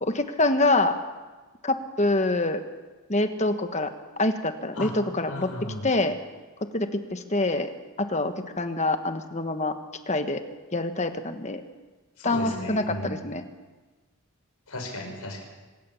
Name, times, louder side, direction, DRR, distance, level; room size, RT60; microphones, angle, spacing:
voice 1, 0.0-0.9 1.6-2.6 3.1-3.9 4.2-5.5 5.8-6.2 6.7-7.7 8.0-9.7 10.1-10.4 10.7-11.6 12.2-13.4, left 2 dB, 30° left, 8 dB, 1.4 m, -25 dB
voice 2, 5.3-5.9 12.2-13.2 14.7-15.4, left 1 dB, 90° left, 3 dB, 5.6 m, -35 dB
25.5 x 16.5 x 7.2 m, 1.3 s
head